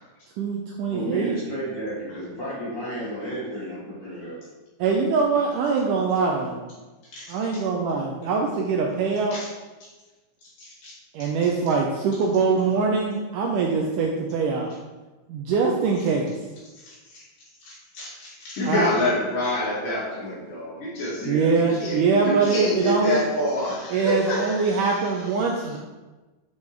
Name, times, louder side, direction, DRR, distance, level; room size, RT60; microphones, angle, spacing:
voice 1, 0.4-1.4 4.8-6.5 7.3-9.4 11.1-14.7 15.3-16.3 18.6-18.9 21.3-23.2 23.9-25.8, right 4 dB, 90° right, 0 dB, 1.9 m, -23 dB
voice 2, 0.9-4.4 21.1-21.5, equal, 35° left, -10 dB, 2.6 m, -32 dB
voice 3, 10.6-10.9 11.2-11.3 17.1-17.2 17.6-22.0 22.2-25.1, left 1 dB, 65° left, -9 dB, 4.3 m, -27 dB
8.1 x 5.2 x 3.3 m, 1.2 s
omnidirectional pair, 4.3 m